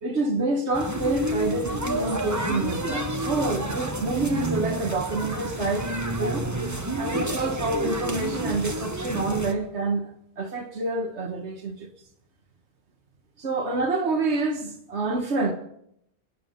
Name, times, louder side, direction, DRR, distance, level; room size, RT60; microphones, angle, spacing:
voice 1, 0.0-6.5 7.0-11.9 13.4-15.5, right 2 dB, 80° right, 1.7 m, -27 dB
sound 1, 0.7-9.5, right 1 dB, 15° right, 1.3 m, -29 dB
27.0 x 9.9 x 5.4 m
omnidirectional pair, 1.1 m